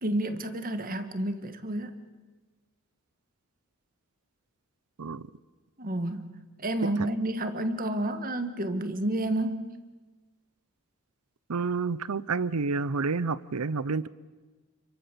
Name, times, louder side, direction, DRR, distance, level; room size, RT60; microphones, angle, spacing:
voice 1, 0.0-1.9 5.8-9.8, right 1 dB, 40° right, 9 dB, 1.7 m, -30 dB
voice 2, 11.5-14.1, right 4 dB, 85° right, 19 dB, 0.7 m, -29 dB
28.5 x 23.5 x 7.0 m, 1.3 s
head